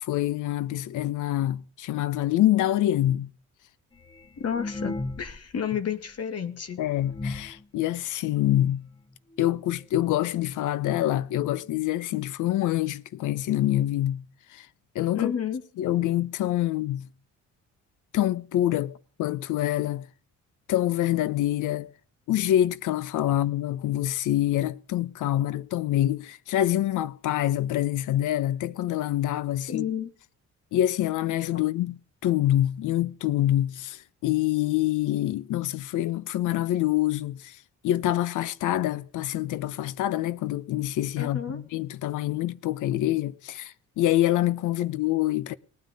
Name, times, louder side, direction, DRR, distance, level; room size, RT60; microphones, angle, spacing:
voice 1, 0.0-3.3 6.8-8.9 9.4-14.2 14.5-14.7 14.9-15.3 15.8-17.1 18.1-20.1 20.7-21.9 22.3-29.9 30.7-37.6 37.8-45.5, left 13 dB, 85° left, 0.9 m, -26 dB
sound 1, 3.9-5.6 5.9-6.0 6.5-6.6 7.0-7.6 8.4-8.5 8.7-8.8 9.1-9.4 10.2-10.3 10.6-10.7 11.3-11.4 11.7-11.8, left 2 dB, 15° left, 1.1 m, -36 dB
voice 2, 4.4-6.8 15.1-15.6 23.3-23.4 29.7-30.1 31.5-31.7 41.2-41.6, left 8 dB, 55° left, 2.2 m, -31 dB
19.0 x 9.3 x 5.3 m
cardioid pair, 90°, 30 cm